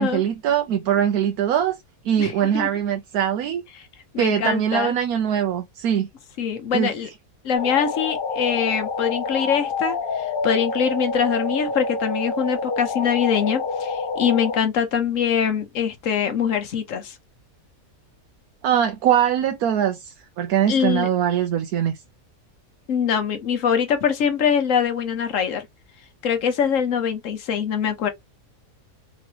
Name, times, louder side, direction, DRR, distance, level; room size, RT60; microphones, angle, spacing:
voice 1, 0.0-1.8 2.0-3.6 4.2-6.1 6.7-7.1 18.6-22.0, right 9 dB, 85° right, 1.1 m, -22 dB
voice 2, 2.2-2.7 4.1-4.9 6.4-7.1 7.4-17.1 20.7-21.1 22.9-25.7 26.2-28.1, left 7 dB, 60° left, 1.2 m, -23 dB
sound 1, 7.5-14.6, left 4 dB, 45° left, 0.8 m, -27 dB
3.8 x 3.0 x 2.9 m
omnidirectional pair, 1.6 m